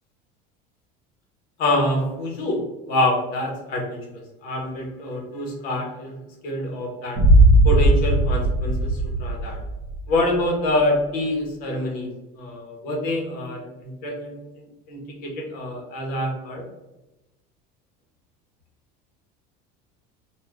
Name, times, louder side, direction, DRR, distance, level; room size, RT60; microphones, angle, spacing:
voice 1, 1.6-7.2 7.6-9.6 10.1-12.1 12.4-14.4 14.9-16.6, left 1 dB, 45° left, 0 dB, 0.8 m, -26 dB
Boom, 7.2-10.1, right 1 dB, 45° right, 1.2 m, -17 dB
2.4 x 2.3 x 3.3 m, 1.0 s
cardioid pair, 160°, 20 cm